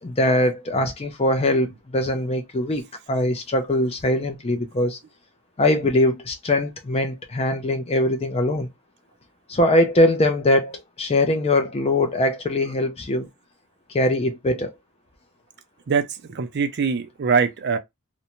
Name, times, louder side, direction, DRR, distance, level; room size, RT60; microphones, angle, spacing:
voice 1, 0.0-5.0 5.6-8.7 9.5-13.3 13.9-14.7, left 1 dB, 30° left, 0.5 m, -22 dB
voice 2, 15.9-17.8, right 5 dB, 50° right, 0.4 m, -23 dB
2.5 x 2.1 x 2.9 m
head